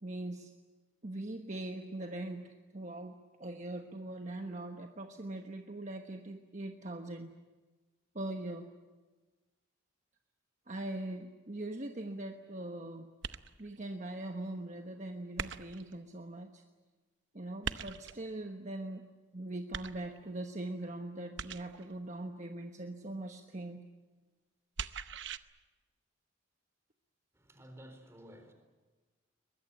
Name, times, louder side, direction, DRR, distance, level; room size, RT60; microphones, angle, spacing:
voice 1, 0.0-0.5 1.0-7.3 8.1-8.7 10.7-13.1 13.6-16.6 17.3-19.1 19.3-23.8, right 1 dB, 35° right, 4 dB, 1.2 m, -41 dB
sound 1, 13.2-13.8 15.4-16.0 17.6-18.3 19.7-20.4 21.4-21.9 24.8-25.4, right 6 dB, 65° right, 0.8 m, -40 dB
voice 2, 27.3-28.5, equal, 15° right, 6 dB, 3.8 m, -53 dB
23.0 x 21.0 x 9.6 m, 1.3 s
head